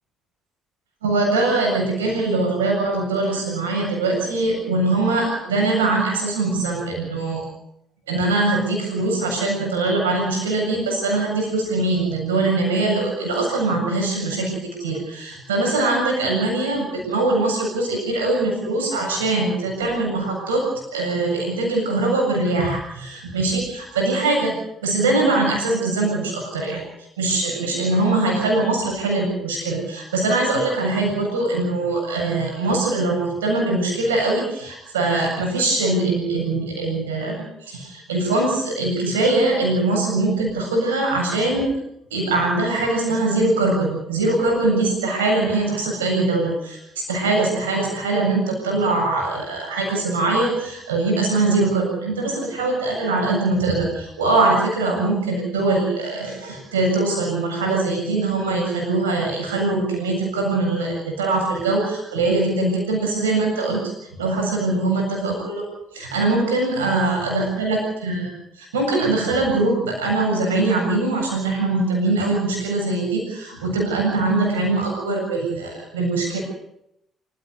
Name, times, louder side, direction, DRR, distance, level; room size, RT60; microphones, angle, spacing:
voice 1, 1.0-7.4 8.1-20.7 20.9-24.5 24.8-26.8 27.2-41.7 42.1-46.8 47.1-63.8 64.2-65.7 65.9-76.4, right 2 dB, 85° right, 0 dB, 7.5 m, -22 dB
26.5 x 16.5 x 6.6 m, 0.80 s
hypercardioid pair, 45°, 0 cm